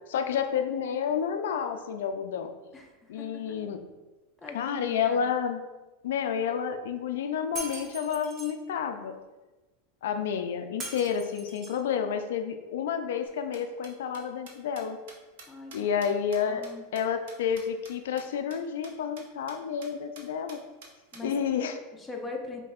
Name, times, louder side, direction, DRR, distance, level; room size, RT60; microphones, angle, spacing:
voice 1, 0.1-2.5 3.1-3.8 4.5-5.6 6.0-9.1 10.0-15.0 15.7-20.6 21.2-21.8, left 7 dB, 80° left, 7 dB, 0.4 m, -30 dB
voice 2, 2.7-3.4 4.4-5.2 15.5-15.7 16.4-16.8 21.1-21.3 22.0-22.6, left 3 dB, 10° left, 0 dB, 0.7 m, -40 dB
Shatter, 7.6-8.5 10.8-11.9, right 2 dB, 35° right, 0.9 m, -40 dB
sound 1, 13.2-17.9 18.2-18.3 18.5-18.6 18.8-18.9 19.2-19.5 19.8-19.9 20.1-21.2, right 4 dB, 75° right, 0.8 m, -49 dB
5.3 x 2.7 x 2.4 m, 1.1 s
supercardioid pair, 120°, 0 cm